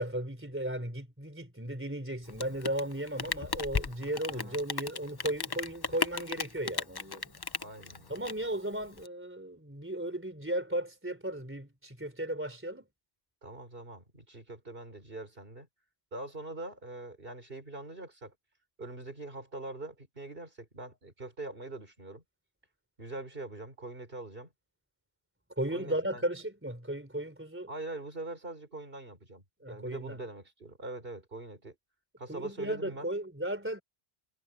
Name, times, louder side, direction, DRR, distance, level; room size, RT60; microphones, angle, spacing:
voice 1, 0.0-7.4 8.1-12.9 25.6-27.7 29.6-30.2 32.3-33.8, right 1 dB, 10° right, 3.7 m, -35 dB
Rain, 2.2-9.1, left 5 dB, 30° left, 0.5 m, -36 dB
voice 2, 7.6-8.2 13.4-15.7 16.1-18.3 18.8-22.2 23.0-24.5 25.7-26.2 27.7-31.7 32.2-33.1, right 2 dB, 60° right, 4.6 m, -43 dB
omnidirectional pair, 1.1 m